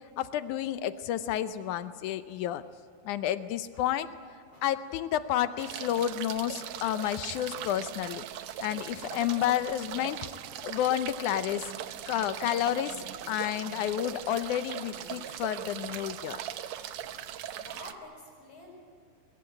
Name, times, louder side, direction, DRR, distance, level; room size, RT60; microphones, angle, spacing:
voice 1, 0.2-2.6 3.1-4.1 4.6-8.2 8.6-10.3 10.6-11.7 12.1-16.4, left 11 dB, 75° left, 12 dB, 2.0 m, -30 dB
sound 1, 5.6-17.9, right 11 dB, 70° right, 1.8 m, -40 dB
voice 2, 17.2-18.7, left 1 dB, 35° left, -3 dB, 6.9 m, -49 dB
22.5 x 22.0 x 8.9 m, 2.1 s
omnidirectional pair, 3.9 m